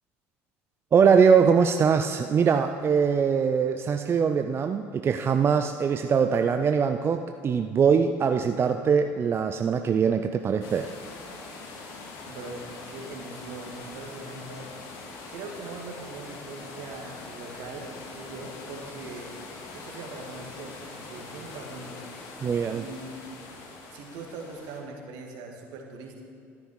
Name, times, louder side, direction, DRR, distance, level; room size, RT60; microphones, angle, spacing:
voice 1, 0.9-10.9 22.4-22.8, right 6 dB, 35° right, 7 dB, 0.5 m, -22 dB
sound 1, 10.6-24.8, left 3 dB, 65° left, 2.2 m, -43 dB
voice 2, 12.3-14.7 15.3-19.3 19.7-22.1 22.7-23.6 23.9-26.2, right 3 dB, 65° right, 1 dB, 2.0 m, -41 dB
12.5 x 10.5 x 4.9 m, 2.4 s
hypercardioid pair, 75°, 7 cm